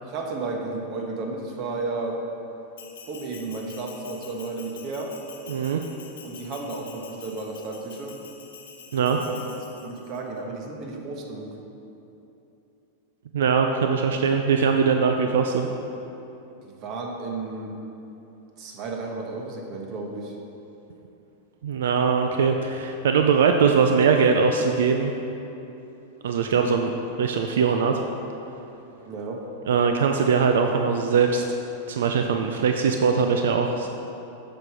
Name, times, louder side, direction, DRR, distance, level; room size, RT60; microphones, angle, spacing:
voice 1, 0.0-2.2 3.1-5.1 6.2-8.2 9.1-9.4 9.8-11.6 16.6-17.7 18.6-20.3 29.0-29.4, right 3 dB, 40° right, 1 dB, 1.2 m, -33 dB
Bell, 2.8-10.2, left 6 dB, 90° left, 1.0 m, -46 dB
voice 2, 5.5-5.8 8.9-9.2 13.3-15.7 21.6-25.1 26.2-26.9 27.2-28.0 29.7-31.4 31.9-33.9, right 5 dB, 85° right, 4 dB, 0.5 m, -21 dB
7.5 x 6.4 x 4.9 m, 2.9 s
supercardioid pair, 140°, 0 cm